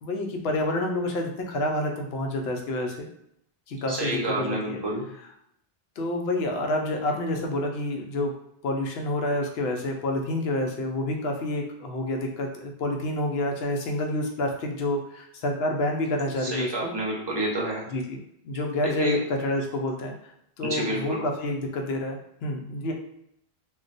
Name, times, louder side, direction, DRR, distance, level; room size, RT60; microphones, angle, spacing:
voice 1, 0.0-3.1 3.7-4.8 6.0-8.3 8.6-16.9 17.9-18.2 18.4-20.1 20.6-22.9, left 1 dB, 80° left, 2 dB, 0.8 m, -28 dB
voice 2, 3.9-5.0 16.4-17.8 18.8-19.2 20.6-21.2, right 1 dB, 30° right, -3 dB, 0.7 m, -28 dB
2.3 x 2.2 x 3.9 m, 0.74 s
omnidirectional pair, 1.0 m